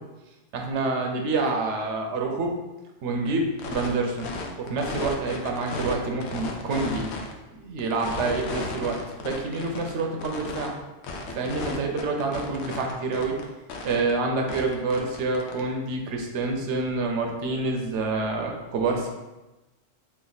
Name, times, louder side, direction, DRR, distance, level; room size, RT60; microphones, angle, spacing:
voice 1, 0.5-2.5 3.0-4.3 4.6-7.1 7.6-10.7 11.3-13.4 13.8-19.1, right 3 dB, 75° right, 2 dB, 0.9 m, -27 dB
sound 1, 3.6-3.9 4.2-5.9 6.2-7.3 7.8-10.7 11.0-13.4 13.7-14.1 14.5-15.6, left 3 dB, 70° left, 0.8 m, -34 dB
3.2 x 2.5 x 3.9 m, 1.1 s
omnidirectional pair, 1.2 m